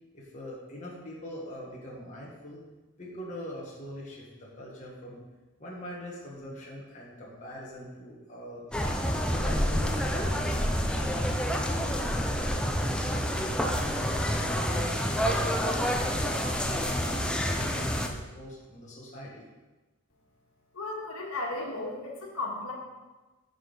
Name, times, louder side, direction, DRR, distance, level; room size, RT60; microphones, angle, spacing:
voice 1, 0.1-2.6 3.0-5.2 5.6-8.8 9.3-13.0 13.5-19.5, left 1 dB, 35° left, -5 dB, 1.3 m, -42 dB
sound 1, 8.7-18.1, equal, 5° left, 0.5 m, -28 dB
voice 2, 20.7-22.7, left 2 dB, 70° left, -2 dB, 1.7 m, -35 dB
9.3 x 5.3 x 3.9 m, 1.2 s
head